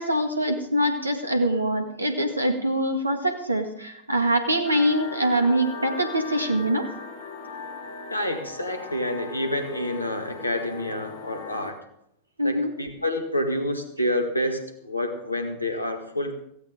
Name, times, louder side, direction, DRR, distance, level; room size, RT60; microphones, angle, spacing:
voice 1, 0.0-6.9 12.4-12.7, right 1 dB, 80° right, 6 dB, 1.9 m, -24 dB
sound 1, 4.6-11.7, left 4 dB, 55° left, 2.3 m, -38 dB
voice 2, 8.1-11.8 12.4-16.3, left 1 dB, 85° left, 6 dB, 2.0 m, -28 dB
16.5 x 15.5 x 3.8 m, 0.73 s
figure-of-eight pair, 90°, 0 cm